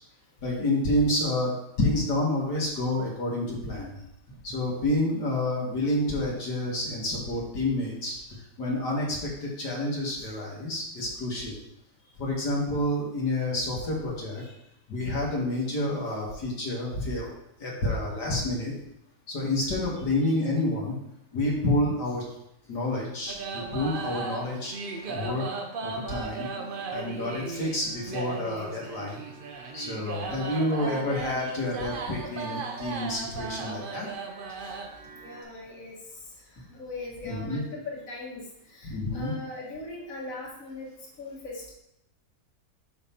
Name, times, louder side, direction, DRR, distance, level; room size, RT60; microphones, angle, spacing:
voice 1, 0.4-1.5 1.8-4.0 4.4-8.2 8.6-11.6 12.2-14.4 14.9-17.3 17.6-18.7 19.3-21.0 21.3-22.2 22.7-24.7 25.0-25.4 25.8-26.5 26.9-29.2 29.7-34.1 34.6-34.7 37.2-37.6 38.8-39.3, left 1 dB, 75° left, -3 dB, 2.0 m, -29 dB
sound 1, 23.3-35.4, right 4 dB, 60° right, 0.5 m, -37 dB
voice 2, 26.4-26.8 27.1-27.4 30.0-30.2 35.1-40.9 41.2-41.7, left 2 dB, 50° left, -5 dB, 2.0 m, -41 dB
5.8 x 5.4 x 4.3 m, 0.81 s
omnidirectional pair, 1.8 m